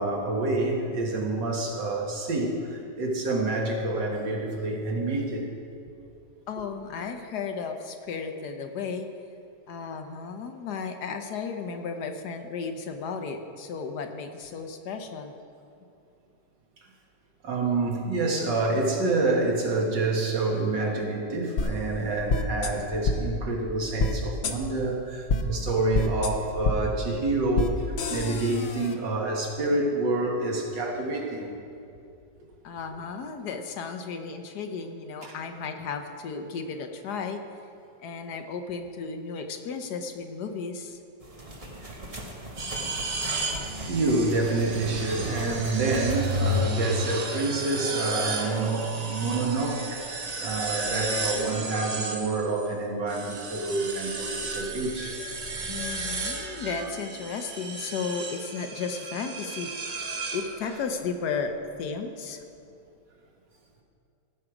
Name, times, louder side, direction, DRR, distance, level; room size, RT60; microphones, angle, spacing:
voice 1, 0.0-5.5 17.4-31.6 35.2-35.3 41.8-42.0 43.8-55.2, right 2 dB, 85° right, -1 dB, 2.2 m, -27 dB
voice 2, 6.5-9.1 9.7-15.3 32.6-37.4 38.0-41.0 55.7-61.5 61.8-62.4, left 5 dB, 70° left, 6 dB, 1.3 m, -34 dB
sound 1, 21.6-21.7 22.3-22.7 23.0-23.2 24.0-24.1 24.4-24.5 25.3-25.4 25.9-26.3 26.6-26.8 27.5-27.7 28.0-28.9, left 3 dB, 55° left, 0.8 m, -26 dB
sound 2, 41.2-46.6, right 1 dB, 25° right, 1.1 m, -39 dB
sound 3, 42.6-52.7 53.1-60.9, right 2 dB, 60° right, 0.4 m, -33 dB
16.0 x 6.5 x 4.8 m, 2.6 s
omnidirectional pair, 1.9 m